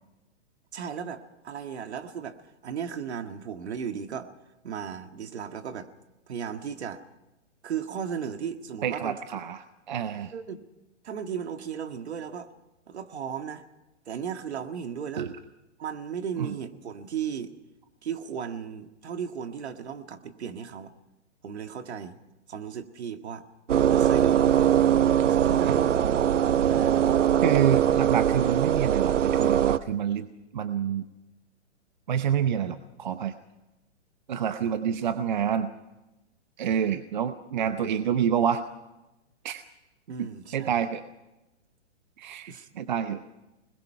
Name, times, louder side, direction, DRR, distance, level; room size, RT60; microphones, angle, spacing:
voice 1, 0.7-2.4 2.6-4.3 4.6-5.9 6.3-7.0 7.6-9.2 10.3-10.6 11.0-12.5 12.9-13.6 14.1-15.3 15.8-17.5 18.0-20.9 21.4-22.2 22.5-23.5 23.7-24.8 25.3-26.0 26.7-27.0 36.9-37.0 40.1-40.8 42.5-42.7, right 7 dB, 60° right, 7 dB, 2.0 m, -35 dB
voice 2, 8.8-10.3 15.2-15.3 16.4-16.5 25.6-25.8 26.8-26.9 27.4-30.3 30.5-31.1 32.1-33.3 34.3-35.7 36.6-38.6 39.4-39.6 40.2-40.3 40.5-41.0 42.2-43.2, right 8 dB, 40° right, 10 dB, 0.8 m, -27 dB
sound 1, 23.7-29.8, right 10 dB, 85° right, 1.0 m, -22 dB
26.0 x 21.0 x 5.8 m, 1.0 s
hypercardioid pair, 175°, 36 cm